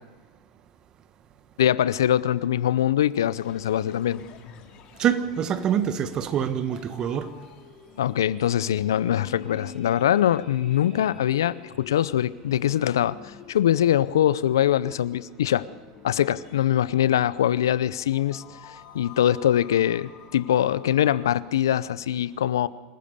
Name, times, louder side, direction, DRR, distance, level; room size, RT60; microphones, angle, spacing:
voice 1, 1.6-4.2 8.0-15.7 16.0-22.7, left 11 dB, 80° left, 0.6 m, -23 dB
sound 1, 3.2-21.3, left 8 dB, 50° left, 2.5 m, -49 dB
voice 2, 5.0-7.3, right 9 dB, 40° right, 1.5 m, -25 dB
sound 2, 7.8-13.1 13.4-13.5, left 3 dB, 5° right, 5.7 m, -47 dB
27.0 x 15.5 x 6.8 m
hypercardioid pair, 95°, 2 cm